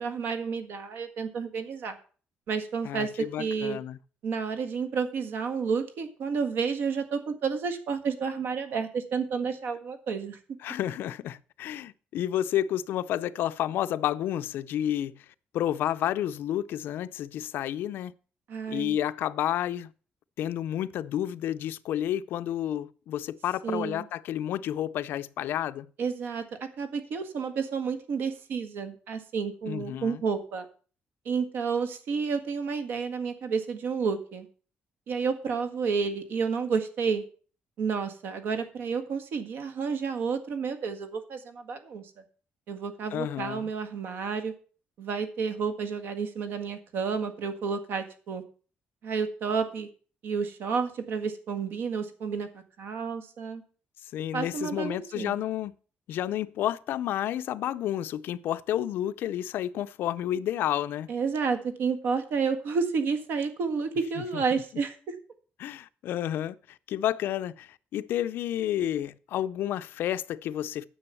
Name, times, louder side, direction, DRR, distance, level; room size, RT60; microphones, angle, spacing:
voice 1, 0.0-2.0 2.5-3.8 4.2-10.4 18.5-19.0 23.6-24.1 26.0-26.4 26.8-30.6 31.2-34.5 35.1-37.2 37.8-42.1 42.7-44.5 45.0-48.4 49.0-49.9 50.2-53.6 54.3-55.4 61.1-65.1, right 5 dB, 65° right, 1.7 m, -30 dB
voice 2, 2.8-4.0 10.6-15.2 15.5-18.1 18.7-19.9 20.4-25.9 29.7-30.2 43.1-43.7 54.1-55.7 56.1-61.1 64.3-64.4 65.6-70.9, left 11 dB, 70° left, 0.5 m, -30 dB
10.0 x 6.9 x 6.9 m
cardioid pair, 165°, 4 cm